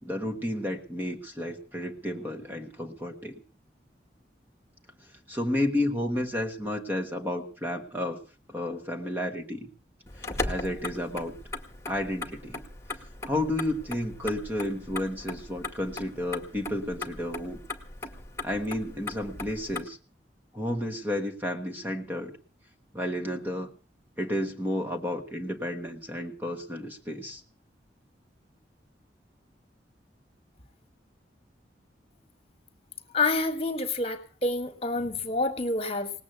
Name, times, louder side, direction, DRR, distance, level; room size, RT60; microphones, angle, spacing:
voice 1, 0.0-3.4 5.3-8.2 8.5-9.7 10.4-11.3 11.9-12.6 13.2-17.6 18.4-20.0 20.5-22.3 22.9-23.7 24.2-27.4, left 1 dB, 10° right, 4 dB, 1.5 m, -31 dB
Motor vehicle (road), 10.1-19.8, left 2 dB, 15° left, 2.0 m, -38 dB
voice 2, 33.1-36.1, left 3 dB, 35° left, 7 dB, 1.8 m, -28 dB
19.0 x 8.5 x 8.1 m, 0.39 s
head